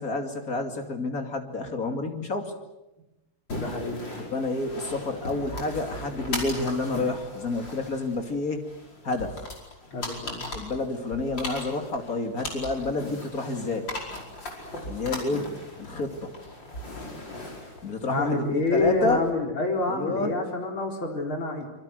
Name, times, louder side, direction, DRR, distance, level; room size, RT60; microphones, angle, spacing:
voice 1, 0.0-2.5 4.2-8.6 9.0-9.4 10.5-13.9 14.9-15.4 15.8-16.3 17.8-19.2 19.8-20.3, left 3 dB, 45° left, 5 dB, 3.1 m, -29 dB
sound 1, 3.5-19.3, left 2 dB, 60° left, 5.9 m, -38 dB
voice 2, 3.6-4.0 9.9-10.4 18.1-21.7, left 2 dB, 80° left, 2 dB, 5.1 m, -27 dB
26.0 x 24.0 x 7.9 m, 0.98 s
omnidirectional pair, 2.2 m